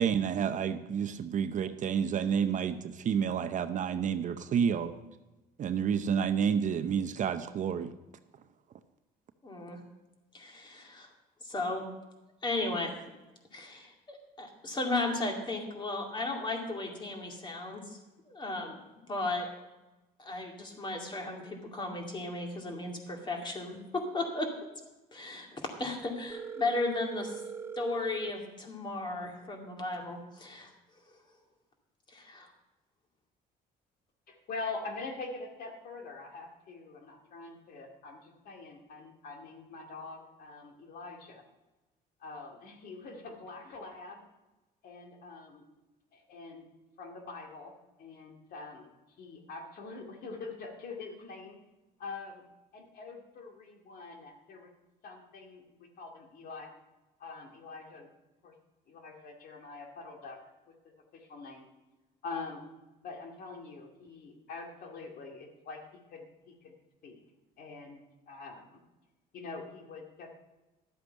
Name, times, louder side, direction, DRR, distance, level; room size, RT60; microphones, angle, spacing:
voice 1, 0.0-4.9 5.6-7.9, right 7 dB, 50° right, 10 dB, 0.7 m, -29 dB
voice 2, 9.4-9.8 10.3-11.1 11.4-11.8 12.4-13.1 13.5-18.0 18.3-18.8 19.1-19.5 20.2-24.5 25.1-25.5 25.8-27.4 27.8-30.7 32.1-32.5, left 2 dB, 25° left, 2 dB, 2.4 m, -35 dB
Telephone, 26.3-28.3, right 6 dB, 15° right, 0.3 m, -41 dB
voice 3, 34.3-41.4 42.2-44.2 44.8-45.6 46.1-46.7 47.0-47.7 48.0-48.9 49.2-51.6 52.0-52.4 52.7-54.7 55.0-56.7 57.2-58.1 58.4-58.5 58.9-60.4 61.1-61.7 62.2-62.6 63.0-65.8 66.1-66.7 67.0-67.2 67.6-68.0 68.3-68.7 69.3-70.3, left 3 dB, 65° left, 2 dB, 2.2 m, -44 dB
12.0 x 8.0 x 5.5 m, 1.1 s
cardioid pair, 110°, 17 cm